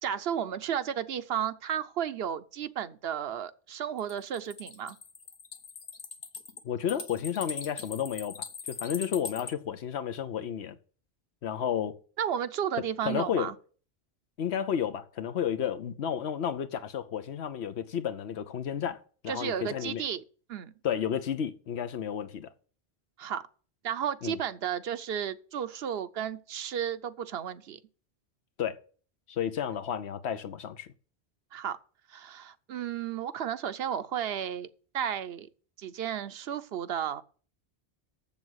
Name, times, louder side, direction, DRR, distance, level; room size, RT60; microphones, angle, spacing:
voice 1, 0.0-5.0 12.2-13.5 19.3-20.2 20.5-20.7 23.2-23.4 23.8-27.8 31.5-31.8 32.1-34.7 34.9-35.5 35.8-37.2, right 9 dB, 65° right, 0.9 m, -33 dB
sound 1, 4.0-9.5, left 5 dB, 55° left, 1.1 m, -41 dB
voice 2, 6.6-10.8 11.4-12.0 13.0-13.5 14.4-20.0 20.8-22.5 24.2-24.4 28.6-28.8 29.3-30.9, left 8 dB, 75° left, 1.0 m, -32 dB
7.2 x 7.2 x 7.9 m
omnidirectional pair, 1.1 m